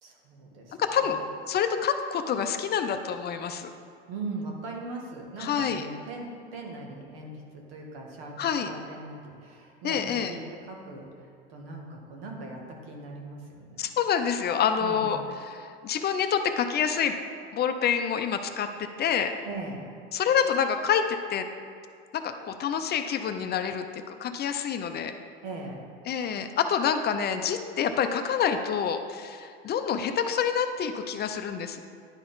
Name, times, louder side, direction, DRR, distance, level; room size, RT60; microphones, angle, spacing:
voice 1, 0.0-1.1 4.1-8.3 8.6-13.9 14.8-15.3 19.4-19.9 25.4-25.8, right 2 dB, 85° right, 0 dB, 1.4 m, -40 dB
voice 2, 0.8-1.2 1.5-3.7 5.4-5.8 8.4-8.7 9.8-10.4 13.8-17.2 17.5-19.3 20.1-21.5 22.1-25.1 26.1-31.8, left 7 dB, 35° left, 7 dB, 0.5 m, -27 dB
10.5 x 4.1 x 3.9 m, 2.3 s
supercardioid pair, 100°, 29 cm